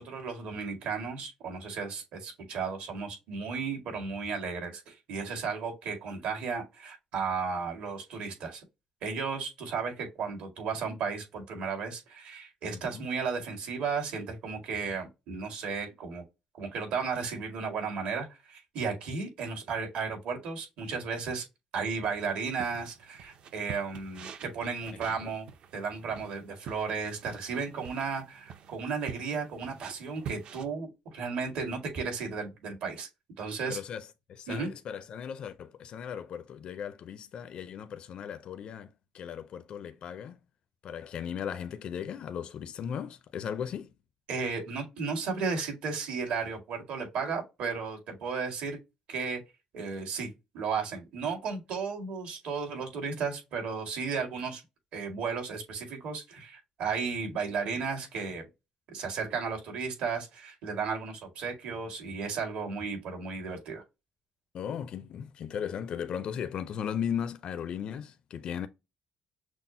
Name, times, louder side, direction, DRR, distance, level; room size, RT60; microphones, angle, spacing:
voice 1, 0.0-8.6 9.0-16.2 16.6-21.4 21.7-25.5 25.7-33.1 33.4-33.8 34.5-34.7 44.3-48.8 49.1-49.4 49.7-50.3 50.5-54.6 54.9-58.4 58.9-63.8, right 5 dB, 70° right, 1.9 m, -34 dB
sound 1, 22.0-30.7, right 8 dB, 55° right, 0.5 m, -47 dB
voice 2, 33.7-38.9 39.1-40.4 40.8-43.9 64.5-68.7, left 8 dB, 50° left, 0.4 m, -37 dB
6.0 x 2.0 x 2.6 m
cardioid pair, 145°, 2 cm